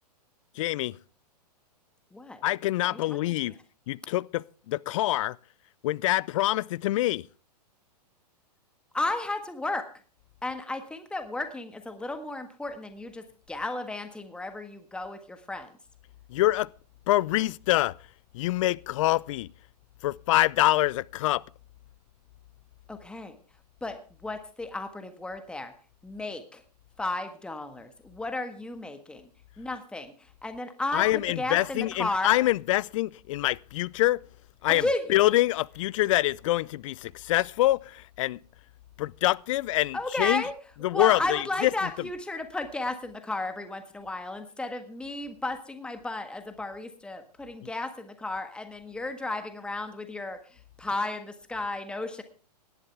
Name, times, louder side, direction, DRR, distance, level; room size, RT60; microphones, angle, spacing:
voice 1, 0.5-1.0 2.4-3.6 3.9-5.4 5.8-7.3 16.3-16.7 17.1-18.0 18.3-19.5 20.0-21.4 30.9-34.2 34.6-38.4 39.0-40.4 40.8-42.1 47.6-47.7, left 16 dB, 50° left, 0.6 m, -25 dB
voice 2, 2.1-2.4 2.8-3.2 8.9-9.9 10.4-15.7 22.9-23.4 23.8-25.7 26.0-26.6 27.0-29.3 29.6-31.0 31.4-32.3 34.7-35.0 39.9-40.5 40.9-52.2, left 2 dB, 5° left, 1.5 m, -33 dB
17.5 x 11.5 x 3.4 m
hypercardioid pair, 110°, 21 cm